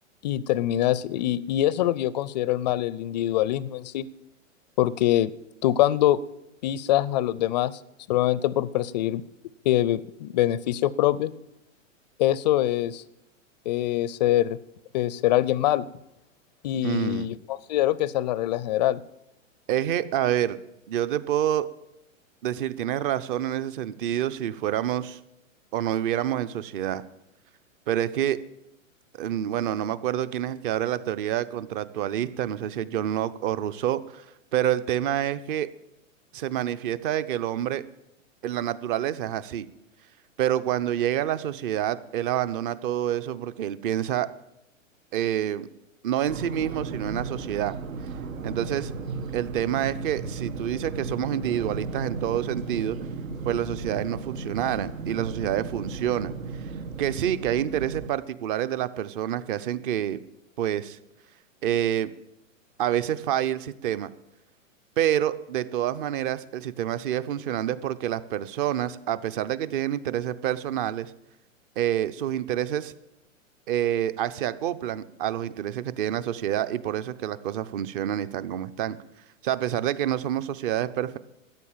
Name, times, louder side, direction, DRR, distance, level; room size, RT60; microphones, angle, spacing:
voice 1, 0.2-4.1 4.8-5.3 5.6-6.2 6.6-7.8 8.1-9.2 9.7-11.3 12.2-13.0 13.7-14.6 14.9-15.9 16.6-19.0, left 13 dB, 35° left, 20 dB, 0.4 m, -24 dB
voice 2, 16.8-17.3 19.7-20.6 20.9-21.7 22.4-25.2 25.7-27.0 27.9-28.4 29.1-34.2 34.5-35.7 36.3-37.8 38.4-39.7 40.4-44.3 45.1-45.7 46.0-47.8 48.4-48.9 49.3-53.0 53.5-56.3 57.0-60.2 60.6-61.0 61.6-62.1 62.8-64.1 65.0-71.1 71.8-72.9 73.7-79.0 79.4-81.2, right 11 dB, 40° right, 15 dB, 0.8 m, -27 dB
sound 1, 46.2-58.1, right 4 dB, 85° right, 1.4 m, -35 dB
13.5 x 9.4 x 7.3 m, 0.86 s
hypercardioid pair, 130°, 40 cm